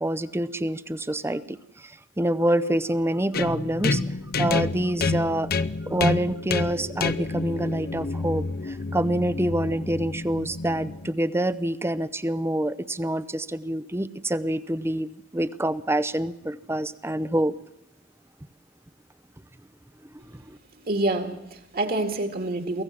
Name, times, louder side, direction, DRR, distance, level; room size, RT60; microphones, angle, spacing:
voice 1, 0.0-4.0 4.4-5.5 5.8-17.5 20.3-20.6, right 1 dB, 15° right, 17 dB, 0.7 m, -27 dB
sound 1, 3.3-11.1, left 3 dB, 55° left, 0.7 m, -28 dB
voice 2, 20.7-22.8, right 2 dB, 50° right, 6 dB, 2.2 m, -27 dB
23.5 x 16.0 x 7.5 m, 0.83 s
head